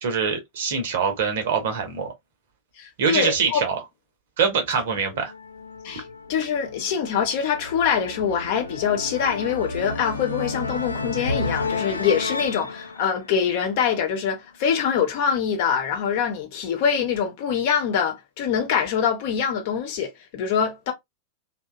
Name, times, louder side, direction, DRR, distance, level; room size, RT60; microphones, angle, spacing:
voice 1, 0.0-2.1 3.0-3.8 4.4-5.3, right 6 dB, 55° right, 0.8 m, -24 dB
voice 2, 2.8-3.6 5.8-6.0 6.3-20.9, left 7 dB, 50° left, 0.8 m, -24 dB
sound 1, 5.1-14.2, left 3 dB, 80° left, 0.4 m, -32 dB
2.8 x 2.2 x 2.3 m
figure-of-eight pair, 90°, 0 cm